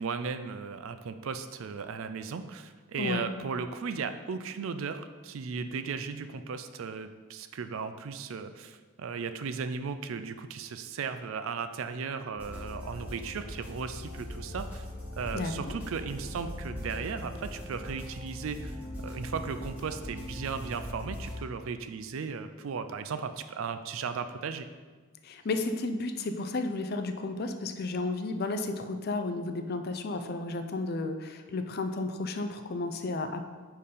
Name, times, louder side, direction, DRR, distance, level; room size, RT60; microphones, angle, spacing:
voice 1, 0.0-14.8 15.2-18.7 19.0-24.7, right 5 dB, 70° right, 10 dB, 0.4 m, -36 dB
voice 2, 3.0-3.3 15.3-15.7 25.2-33.4, left 2 dB, 45° left, 7 dB, 0.4 m, -33 dB
sound 1, 12.4-21.4, left 1 dB, 10° right, 1.7 m, -40 dB
5.4 x 4.6 x 4.9 m, 1.4 s
head